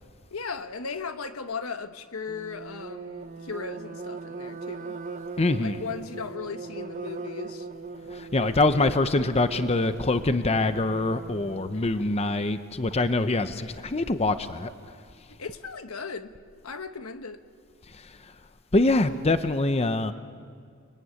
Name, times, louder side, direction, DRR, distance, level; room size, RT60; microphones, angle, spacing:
voice 1, 0.3-5.0 5.6-7.7 11.7-12.2 15.3-16.4 16.6-17.4, left 5 dB, 80° left, 1.2 m, -37 dB
sound 1, 2.3-11.9, right 4 dB, 35° right, 0.8 m, -40 dB
voice 2, 5.4-5.8 8.1-14.7 18.7-20.1, left 2 dB, 30° left, 0.7 m, -24 dB
30.0 x 20.5 x 9.6 m
head